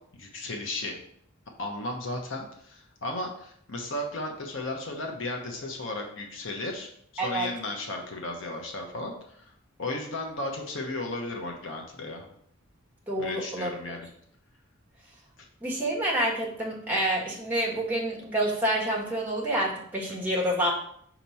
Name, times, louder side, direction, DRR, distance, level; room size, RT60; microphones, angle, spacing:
voice 1, 0.1-1.0 1.6-9.5 9.8-12.3 13.2-14.1 20.1-20.3, left 2 dB, 65° left, 2 dB, 1.0 m, -35 dB
voice 2, 7.2-7.5 13.1-14.0 15.6-20.7, right 1 dB, 10° right, -3 dB, 1.5 m, -28 dB
5.8 x 3.0 x 5.5 m, 0.66 s
head